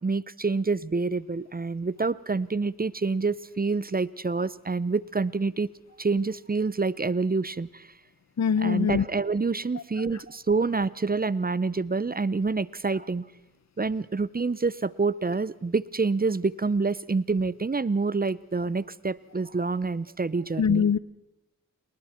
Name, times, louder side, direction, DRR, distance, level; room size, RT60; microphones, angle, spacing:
voice 1, 0.0-5.7 6.0-7.9 8.6-13.3 13.8-20.8, right 4 dB, 25° right, 19 dB, 0.7 m, -27 dB
voice 2, 8.4-9.0 20.6-21.0, left 6 dB, 50° left, 19 dB, 0.8 m, -22 dB
29.5 x 20.5 x 4.5 m, 0.95 s
cardioid pair, 40°, 34 cm